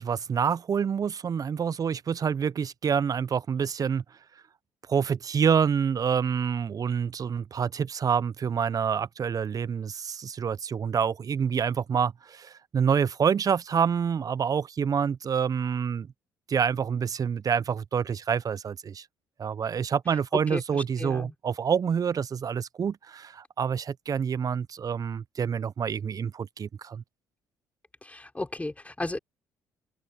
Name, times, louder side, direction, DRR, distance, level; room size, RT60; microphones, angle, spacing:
voice 1, 0.0-4.0 4.9-16.1 16.5-19.0 19.4-27.0, right 7 dB, 45° right, 1.1 m, -27 dB
voice 2, 20.1-21.3 28.0-29.2, left 2 dB, 15° left, 6.2 m, -34 dB
hypercardioid pair, 50°, 8 cm